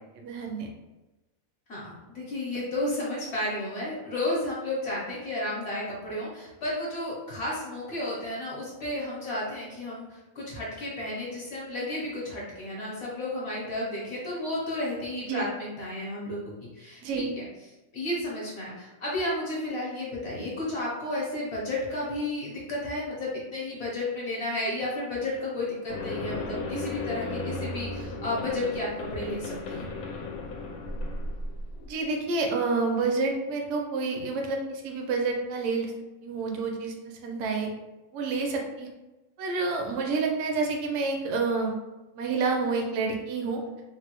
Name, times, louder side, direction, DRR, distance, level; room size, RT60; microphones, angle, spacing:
voice 1, 0.1-0.7 15.3-15.4 17.0-17.3 31.9-35.9 36.2-37.7 38.1-38.9 39.4-41.7 42.2-43.6, right 4 dB, 70° right, 1 dB, 0.8 m, -28 dB
voice 2, 1.7-10.1 10.3-17.0 17.4-17.5 17.9-29.9, left 1 dB, 55° left, -5 dB, 1.0 m, -32 dB
sound 1, 25.9-32.0, left 2 dB, 90° left, 1.0 m, -35 dB
3.3 x 2.2 x 2.9 m, 1.1 s
omnidirectional pair, 1.5 m